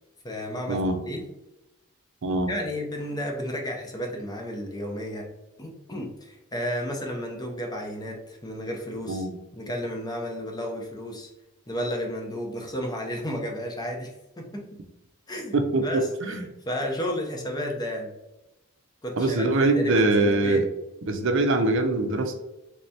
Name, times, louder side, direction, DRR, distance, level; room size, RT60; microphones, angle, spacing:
voice 1, 0.2-1.2 2.5-5.3 5.6-9.3 9.5-11.3 11.7-14.1 14.4-14.6 15.3-18.1 19.0-20.6, equal, 20° left, 1 dB, 0.6 m, -32 dB
voice 2, 2.2-2.5 9.1-9.3 15.5-16.4 19.2-20.7 21.0-22.4, right 2 dB, 55° right, 5 dB, 0.6 m, -23 dB
3.4 x 3.2 x 2.7 m, 0.94 s
head